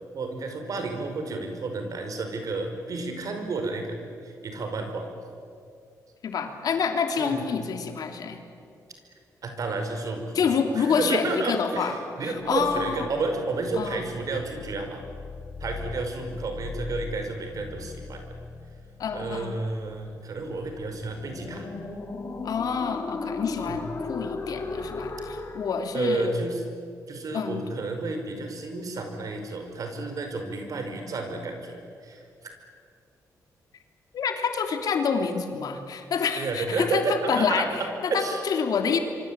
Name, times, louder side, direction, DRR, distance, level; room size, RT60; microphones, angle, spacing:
voice 1, 0.1-4.0 4.2-5.1 7.2-7.4 9.4-15.0 15.6-18.2 19.1-21.7 23.7-23.8 25.9-26.6 27.1-32.3 36.4-38.4, right 3 dB, 60° right, 5 dB, 5.4 m, -31 dB
voice 2, 6.2-8.4 10.3-11.9 12.2-13.1 13.7-14.0 19.0-19.6 22.4-26.4 27.3-27.6 34.1-39.0, left 6 dB, 70° left, 5 dB, 3.1 m, -27 dB
sound 1, 12.5-25.7, left 4 dB, 45° left, 3.7 m, -38 dB
26.5 x 24.0 x 9.0 m, 2.4 s
cardioid pair, 85°, 7 cm